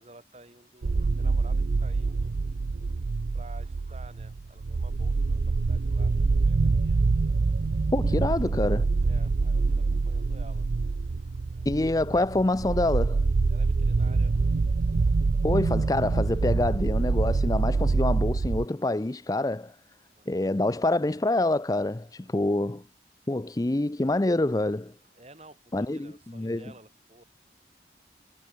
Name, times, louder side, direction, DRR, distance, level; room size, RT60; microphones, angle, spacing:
voice 1, 0.0-2.3 2.9-3.0 3.3-7.0 7.8-8.7 9.0-10.7 11.2-11.7 13.5-14.5 15.1-15.2 20.2-20.5 22.2-22.5 25.1-27.2, right 2 dB, 35° right, 3.9 m, -52 dB
sound 1, 0.8-18.6, right 3 dB, 70° right, 0.5 m, -25 dB
voice 2, 7.9-8.9 11.7-13.3 15.4-19.7 20.3-22.8 23.3-24.9 25.7-26.6, left 2 dB, 20° left, 0.5 m, -26 dB
head